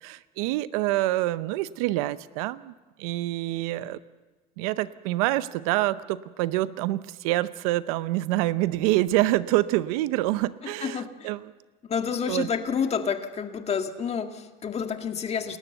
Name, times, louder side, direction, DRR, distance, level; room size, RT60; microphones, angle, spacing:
voice 1, 0.0-4.0 4.6-11.5 12.3-12.5, right 17 dB, 90° right, 16 dB, 0.7 m, -26 dB
voice 2, 10.8-11.3 11.8-15.6, left 6 dB, 35° left, 6 dB, 1.9 m, -29 dB
28.5 x 13.0 x 8.0 m, 1.3 s
supercardioid pair, 100°, 18 cm